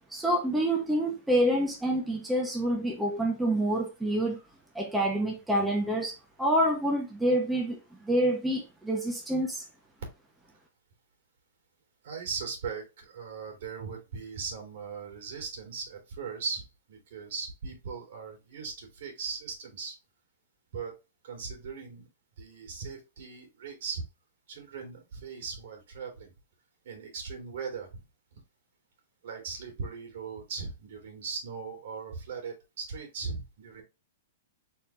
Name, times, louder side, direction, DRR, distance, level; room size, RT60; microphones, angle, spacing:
voice 1, 0.1-4.4 4.7-6.1 6.4-9.6, right 1 dB, 5° right, 1.1 m, -27 dB
voice 2, 12.0-19.9 20.7-20.9 21.2-22.1 22.4-24.0 24.5-26.3 26.8-28.0 28.3-28.4 29.2-33.8, right 5 dB, 65° right, 2.7 m, -39 dB
4.4 x 3.6 x 3.4 m
hypercardioid pair, 145°, 0 cm